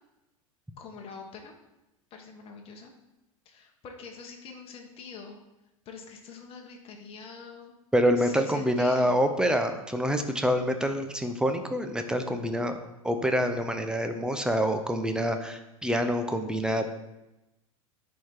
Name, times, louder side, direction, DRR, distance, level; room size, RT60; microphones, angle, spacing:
voice 1, 0.8-1.5 2.1-2.9 3.4-5.4 5.8-7.7 8.2-9.2, left 5 dB, 30° left, 2 dB, 1.3 m, -45 dB
voice 2, 7.9-12.7 13.0-16.9, equal, 5° right, 6 dB, 0.7 m, -26 dB
10.5 x 3.8 x 4.5 m, 0.96 s
figure-of-eight pair, 90°, 18 cm